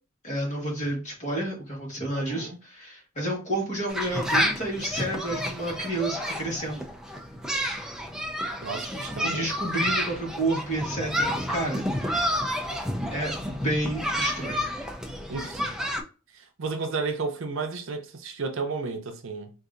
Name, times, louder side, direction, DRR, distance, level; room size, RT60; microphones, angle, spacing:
voice 1, 0.2-6.9 9.2-11.9 13.1-14.7, right 1 dB, 35° left, 1.6 m, -30 dB
voice 2, 2.1-2.6 8.6-9.5 15.3-15.6 16.3-19.5, right 4 dB, 65° right, 0.6 m, -32 dB
sound 1, 3.9-16.0, equal, 5° right, 0.4 m, -30 dB
3.9 x 2.6 x 2.5 m
head